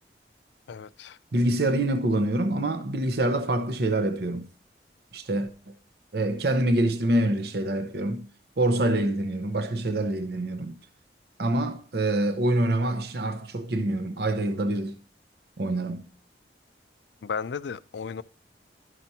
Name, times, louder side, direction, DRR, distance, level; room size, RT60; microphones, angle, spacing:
voice 1, 0.7-1.2 17.2-18.2, left 6 dB, 75° left, 0.4 m, -34 dB
voice 2, 1.3-4.5 5.1-5.7 6.1-8.2 8.6-10.7 11.4-15.0 15.6-16.0, right 1 dB, 60° right, 0.7 m, -26 dB
12.5 x 5.9 x 2.7 m
head